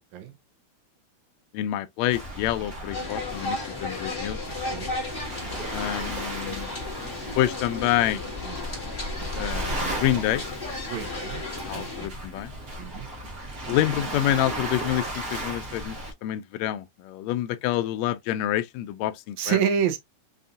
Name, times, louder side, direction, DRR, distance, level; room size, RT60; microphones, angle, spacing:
voice 1, 1.5-4.4 5.7-6.7 7.4-8.2 9.4-10.4 11.7-12.5 13.7-16.0 16.2-19.6, left 13 dB, 80° left, 1.6 m, -27 dB
Waves surf, 2.1-16.1, right 1 dB, 55° right, 1.0 m, -35 dB
sound 1, 2.9-12.1, left 3 dB, 30° left, 1.1 m, -35 dB
voice 2, 10.9-11.5 11.7-12.1 12.8-13.1 19.4-20.0, right 8 dB, 75° right, 2.1 m, -28 dB
5.5 x 2.6 x 2.4 m
omnidirectional pair, 3.6 m